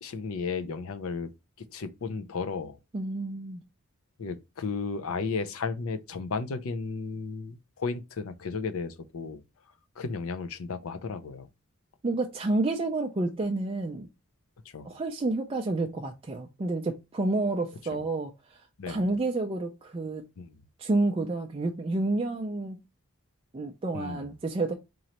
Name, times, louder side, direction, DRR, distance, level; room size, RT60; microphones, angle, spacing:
voice 1, 0.0-1.3 1.7-2.8 4.2-9.4 10.0-11.5 14.7-14.9 18.8-19.1 20.4-20.6 23.9-24.3, left 4 dB, 70° left, 0.5 m, -34 dB
voice 2, 2.9-3.6 12.0-14.1 14.8-18.6 18.9-20.2 20.8-22.8 23.5-24.7, right 2 dB, 25° right, 0.3 m, -29 dB
3.8 x 3.1 x 2.9 m
head